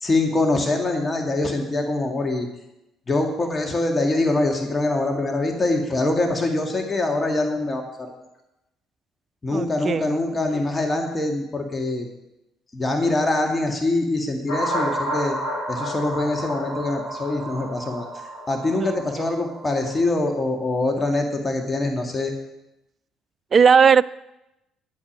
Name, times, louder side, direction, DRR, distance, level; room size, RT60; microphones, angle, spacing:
voice 1, 0.0-2.5 3.1-8.1 9.4-12.1 12.7-15.4 15.7-18.1 18.5-22.3, left 2 dB, 25° left, 2 dB, 2.0 m, -24 dB
voice 2, 9.5-10.2 18.8-19.3 23.5-24.0, right 6 dB, 40° right, 20 dB, 0.3 m, -18 dB
sound 1, 14.5-20.1, right 1 dB, 80° left, 4.1 m, -30 dB
10.5 x 9.0 x 6.1 m, 0.92 s
figure-of-eight pair, 50°, 0 cm